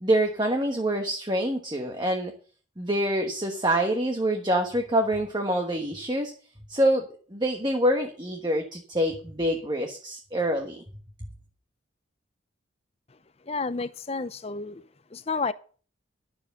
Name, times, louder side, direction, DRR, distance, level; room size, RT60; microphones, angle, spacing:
voice 1, 0.0-2.3 2.8-6.3 6.7-7.0 7.3-10.8, right 1 dB, 20° right, 1.3 m, -26 dB
voice 2, 13.5-14.8 15.1-15.5, left 4 dB, 30° left, 0.6 m, -30 dB
11.5 x 7.2 x 6.7 m
head